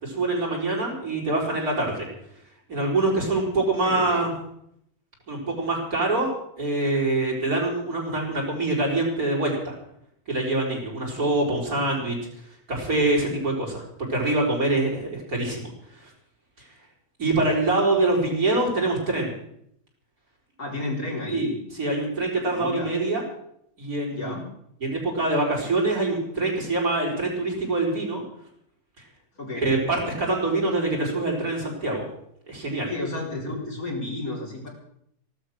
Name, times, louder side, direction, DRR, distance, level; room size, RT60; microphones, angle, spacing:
voice 1, 0.0-2.1 2.7-4.3 5.3-6.3 6.6-9.7 10.3-12.2 12.7-13.8 14.1-15.7 16.0-16.1 16.6-16.7 17.2-19.3 21.3-21.5 21.7-23.2 23.8-24.4 24.8-28.2 29.5-32.1 32.5-32.9, right 2 dB, 80° right, -2 dB, 5.3 m, -25 dB
voice 2, 3.8-4.2 20.6-21.6 22.5-22.9 24.1-24.5 29.4-29.7 32.9-34.7, left 2 dB, 70° left, -1 dB, 4.7 m, -32 dB
15.5 x 12.0 x 6.5 m, 0.72 s
omnidirectional pair, 1.6 m